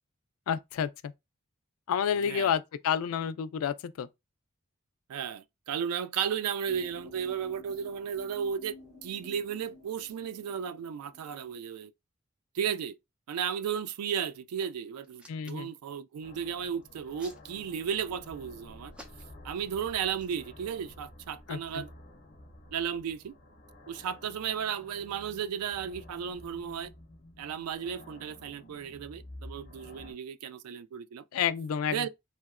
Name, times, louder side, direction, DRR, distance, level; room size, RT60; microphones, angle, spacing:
voice 1, 0.5-0.9 1.9-4.1 15.3-15.7 21.5-21.8 31.3-32.1, left 8 dB, 75° left, 0.3 m, -30 dB
voice 2, 2.2-2.5 5.1-8.8 9.0-11.9 12.5-13.0 13.3-18.9 19.4-21.9 22.7-23.3 23.9-26.9 27.4-31.2 31.9-32.1, right 8 dB, 85° right, 0.3 m, -34 dB
sound 1, 6.7-11.6, left 2 dB, 35° right, 1.7 m, -53 dB
Hands, 15.0-15.8 16.8-18.0 18.9-19.5 20.1-20.4, equal, 5° right, 0.4 m, -52 dB
sound 2, 16.2-30.1, left 1 dB, 40° left, 0.6 m, -51 dB
3.0 x 2.8 x 2.4 m
head